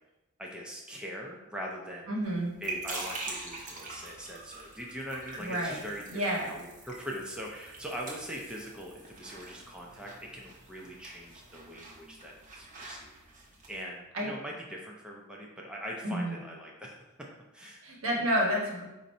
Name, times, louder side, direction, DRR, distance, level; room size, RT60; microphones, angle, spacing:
voice 1, 0.4-2.1 2.6-13.1 13.7-17.0 17.5-17.8, equal, 5° right, -2 dB, 0.5 m, -42 dB
voice 2, 2.1-2.6 5.4-5.8 6.1-6.5 14.1-14.3 16.0-16.4 17.8-18.9, equal, 75° right, -2 dB, 1.2 m, -30 dB
sound 1, 2.2-13.8, right 3 dB, 35° right, 0.8 m, -44 dB
4.5 x 2.6 x 4.1 m, 1.0 s
head